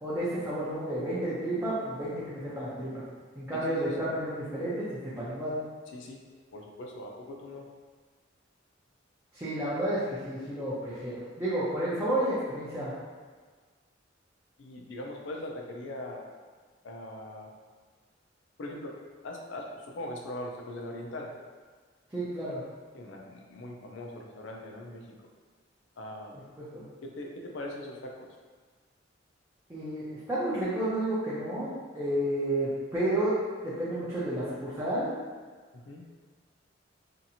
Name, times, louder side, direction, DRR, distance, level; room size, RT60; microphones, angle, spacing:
voice 1, 0.0-2.9 3.4-5.6 9.3-12.9 22.1-22.6 26.6-26.8 29.7-33.3 33.6-35.1, right 1 dB, 15° right, -10 dB, 0.5 m, -31 dB
voice 2, 3.5-3.9 5.9-6.2 6.5-7.7 14.6-16.3 16.8-17.5 18.6-19.0 19.2-21.3 22.9-25.0 26.0-26.4 27.0-28.3 35.7-36.0, left 1 dB, 70° left, 1 dB, 0.4 m, -41 dB
2.7 x 2.5 x 2.7 m, 1.5 s
head